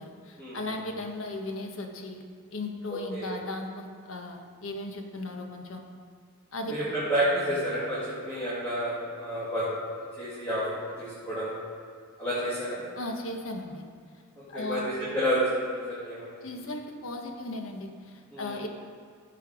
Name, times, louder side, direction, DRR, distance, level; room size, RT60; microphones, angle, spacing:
voice 1, 0.0-2.2 2.5-5.8 6.5-6.7 13.0-13.8 14.5-14.9 16.4-18.7, left 2 dB, 70° left, 3 dB, 1.3 m, -36 dB
voice 2, 2.9-3.3 6.7-9.6 10.2-11.5 12.2-12.8 14.4-16.3 18.3-18.6, equal, 10° left, -11 dB, 2.7 m, -30 dB
15.5 x 5.7 x 5.1 m, 2.2 s
head